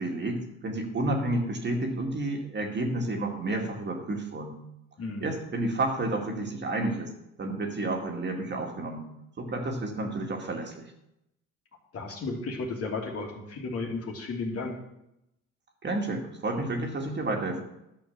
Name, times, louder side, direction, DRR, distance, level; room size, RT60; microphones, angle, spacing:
voice 1, 0.0-4.6 5.2-7.1 7.4-9.1 9.4-10.7 15.8-17.6, right 2 dB, 35° right, 2 dB, 2.2 m, -30 dB
voice 2, 5.0-5.3 11.9-14.8, left 3 dB, 45° left, 0 dB, 2.8 m, -34 dB
12.0 x 5.4 x 7.3 m, 0.84 s
cardioid pair, 105°, 31 cm